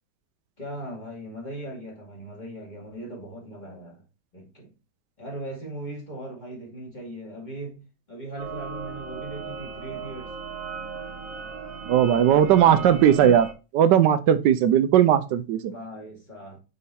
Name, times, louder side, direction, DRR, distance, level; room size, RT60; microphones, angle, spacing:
voice 1, 0.6-4.0 4.3-4.7 5.2-7.7 8.1-10.3 12.3-13.5 15.7-16.6, right 1 dB, 25° left, 2.3 m, -38 dB
sound 1, 8.4-13.5, right 5 dB, 55° right, 1.2 m, -37 dB
voice 2, 11.9-13.5 13.7-15.7, right 10 dB, 80° right, 1.2 m, -18 dB
5.4 x 4.8 x 4.2 m
omnidirectional pair, 1.9 m